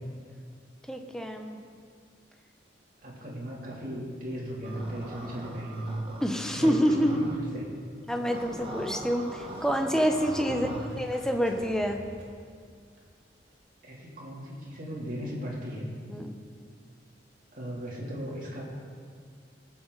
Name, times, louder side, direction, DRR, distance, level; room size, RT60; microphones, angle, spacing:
voice 1, 0.9-1.6 6.2-7.2 8.1-10.7 11.0-12.0 16.1-16.4, equal, 5° left, 4 dB, 0.8 m, -27 dB
voice 2, 3.0-6.0 6.5-7.6 10.5-10.8 13.8-15.9 17.5-18.6, equal, 50° right, -5 dB, 2.9 m, -37 dB
sound 1, 4.6-7.4 8.2-10.9, right 1 dB, 30° right, 1.2 m, -42 dB
Motorcycle, 6.9-13.6, equal, 80° right, 2.1 m, -50 dB
19.5 x 7.4 x 3.9 m, 2.1 s
head